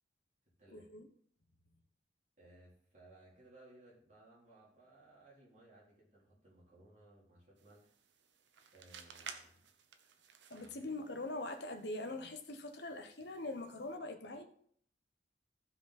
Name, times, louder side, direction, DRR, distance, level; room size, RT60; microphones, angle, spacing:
voice 1, 0.7-1.1 10.5-14.5, left 2 dB, 65° left, 1.1 m, -43 dB
voice 2, 2.4-8.0 8.7-9.6 9.9-10.3 10.6-10.9, right 2 dB, 40° right, 3.9 m, -62 dB
sound 1, 7.6-14.0, right 6 dB, 80° right, 0.9 m, -56 dB
15.0 x 5.2 x 4.3 m
head